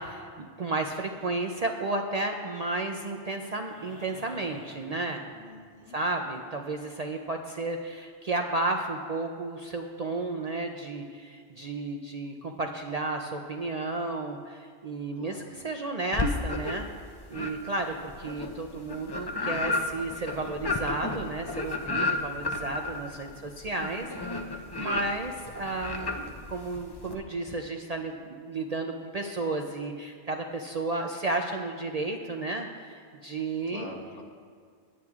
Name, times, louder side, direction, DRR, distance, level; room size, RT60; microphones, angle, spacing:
voice 1, 0.0-5.2 5.9-16.9 17.3-24.1 24.8-33.9, right 2 dB, 50° right, 3 dB, 0.5 m, -33 dB
sound 1, 3.6-5.9 7.7-7.8, equal, 20° right, 1.6 m, -52 dB
voice 2, 5.3-6.0 15.1-15.5 23.3-24.0 33.7-34.2, left 2 dB, 80° left, -2 dB, 1.7 m, -46 dB
sound 2, 16.1-16.9 17.3-27.1, left 2 dB, 30° left, 0.5 m, -32 dB
17.0 x 10.0 x 2.4 m, 2.1 s
omnidirectional pair, 1.2 m